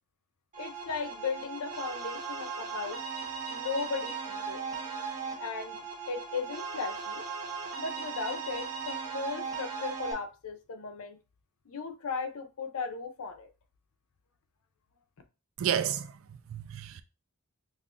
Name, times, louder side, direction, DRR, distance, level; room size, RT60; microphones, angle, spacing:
sound 1, 0.5-10.1, right 5 dB, 35° right, 1.0 m, -38 dB
voice 1, 0.6-3.0 3.5-4.6 5.4-7.2 7.8-11.2 11.7-13.5, left 4 dB, 80° left, 0.6 m, -36 dB
voice 2, 15.6-17.0, right 9 dB, 65° right, 0.3 m, -32 dB
5.3 x 2.2 x 2.4 m
head